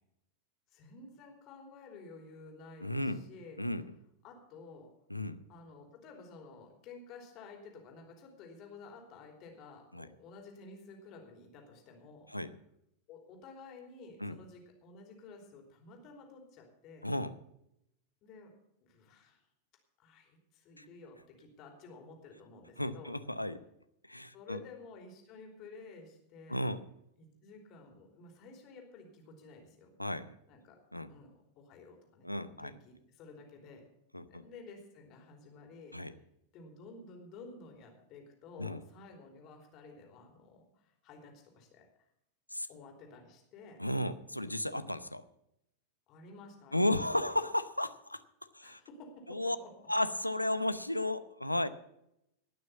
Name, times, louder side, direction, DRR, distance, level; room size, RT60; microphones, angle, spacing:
voice 1, 0.7-3.6 4.2-4.9 5.5-12.3 13.1-17.1 18.2-18.5 18.8-19.4 20.0-23.1 24.3-26.6 27.2-29.9 30.5-30.8 31.1-31.3 31.6-33.8 34.3-36.2 36.5-41.9 42.7-43.8 46.1-47.0 47.2-47.4 48.6-49.9, left 3 dB, 40° left, 2 dB, 3.3 m, -52 dB
voice 2, 2.8-3.2 3.6-3.8 5.1-5.4 9.9-10.1 12.3-12.5 14.2-14.4 17.0-17.3 20.8-20.9 22.8-23.6 24.1-24.6 26.5-26.8 30.0-30.4 30.9-31.1 32.2-32.7 34.1-34.4 35.9-36.1 38.6-38.8 42.5-42.7 43.8-45.2 46.7-48.2 48.5-48.8 49.3-49.6 49.9-51.7, left 1 dB, 85° left, 13 dB, 0.7 m, -34 dB
18.5 x 6.3 x 7.2 m, 0.81 s
figure-of-eight pair, 90°, 0 cm